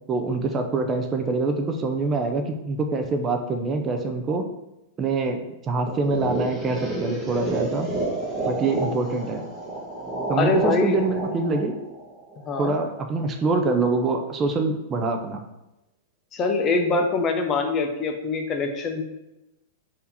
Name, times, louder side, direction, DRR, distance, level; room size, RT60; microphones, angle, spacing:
voice 1, 0.1-4.4 5.0-7.9 8.5-9.5 10.3-11.7 12.6-15.4, right 3 dB, 25° right, 4 dB, 0.5 m, -25 dB
sound 1, 5.9-12.7, right 2 dB, 5° right, 1.3 m, -30 dB
voice 2, 10.3-11.0 12.4-12.8 16.3-19.0, left 3 dB, 30° left, 4 dB, 0.6 m, -24 dB
3.7 x 2.8 x 4.2 m, 0.94 s
hypercardioid pair, 120°, 0 cm